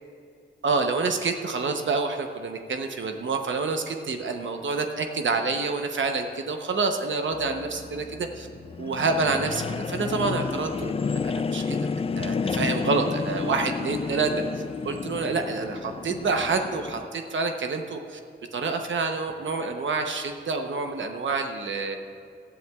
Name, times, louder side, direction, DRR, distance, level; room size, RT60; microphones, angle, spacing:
voice 1, 0.6-8.5 8.8-11.8 12.2-14.3 14.8-18.2 18.5-22.0, right 4 dB, 75° right, 4 dB, 0.9 m, -27 dB
sound 1, 7.3-17.1, left 5 dB, 30° left, 0.3 m, -31 dB
18.0 x 12.5 x 2.4 m, 2.3 s
wide cardioid pair, 85°, 20 cm